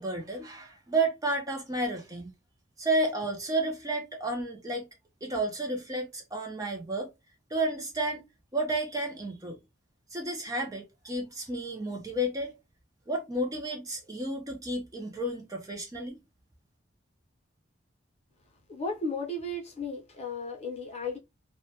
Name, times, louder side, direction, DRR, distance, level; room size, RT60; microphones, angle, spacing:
voice 1, 0.0-2.3 2.8-4.9 5.2-7.1 7.5-8.2 8.5-9.6 10.1-12.5 13.1-16.2, right 2 dB, 20° right, 0.4 m, -31 dB
voice 2, 18.7-21.2, left 2 dB, 35° left, 0.6 m, -34 dB
2.1 x 2.1 x 2.7 m
head